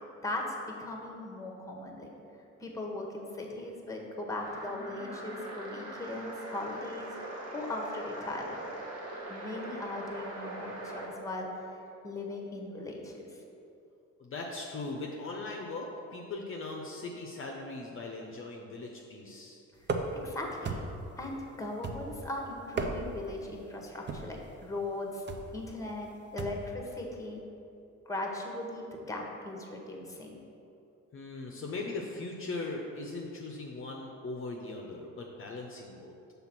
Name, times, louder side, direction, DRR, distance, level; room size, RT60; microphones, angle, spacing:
voice 1, 0.2-2.1 2.6-7.2 7.5-8.6 9.3-13.2 20.2-20.8 21.2-25.2 25.5-27.4 28.1-30.4, left 2 dB, 10° left, 0 dB, 1.0 m, -38 dB
sound 1, 4.4-11.2, right 1 dB, 55° right, 1.1 m, -42 dB
voice 2, 14.2-19.6 31.1-36.1, left 3 dB, 45° left, 0 dB, 0.7 m, -39 dB
sound 2, 19.8-20.3 20.6-21.1 21.8-22.3 22.6-23.3 24.1-24.4 25.3-25.6 26.4-26.7, right 3 dB, 35° right, 0.6 m, -35 dB
5.8 x 3.5 x 5.9 m, 2.7 s
cardioid pair, 90°, 30 cm